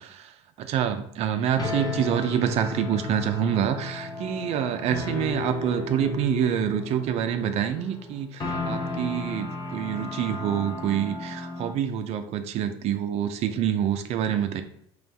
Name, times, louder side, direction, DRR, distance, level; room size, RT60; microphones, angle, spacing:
voice 1, 0.0-14.6, right 9 dB, 50° right, 8 dB, 0.5 m, -27 dB
sound 1, 1.6-11.7, left 2 dB, 30° left, 0.9 m, -34 dB
4.0 x 3.1 x 3.4 m, 0.70 s
supercardioid pair, 95°, 14 cm